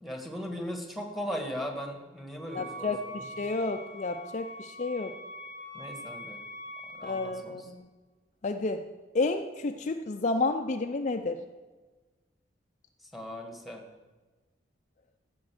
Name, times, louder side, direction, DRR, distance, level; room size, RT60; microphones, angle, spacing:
voice 1, 0.0-2.9 5.7-6.4 6.9-7.6 13.1-13.8, equal, ahead, 3 dB, 1.6 m, -38 dB
voice 2, 2.5-5.1 7.0-7.9 8.4-8.8 9.1-11.4, left 3 dB, 40° left, 6 dB, 0.5 m, -31 dB
Wind instrument woodwind instrument, 2.5-7.4, equal, 40° right, 4.8 m, -43 dB
15.0 x 5.3 x 7.7 m, 1.3 s
head